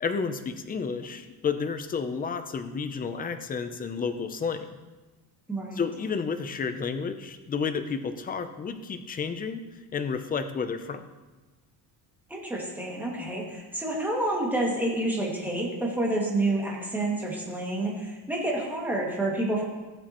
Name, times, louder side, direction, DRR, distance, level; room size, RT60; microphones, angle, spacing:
voice 1, 0.0-4.7 5.7-9.6 9.9-11.1, left 5 dB, 20° left, 8 dB, 0.5 m, -31 dB
voice 2, 5.5-5.8 12.3-19.6, right 1 dB, 5° right, -3 dB, 2.1 m, -29 dB
16.5 x 7.4 x 3.0 m, 1.2 s
cardioid pair, 155°, 44 cm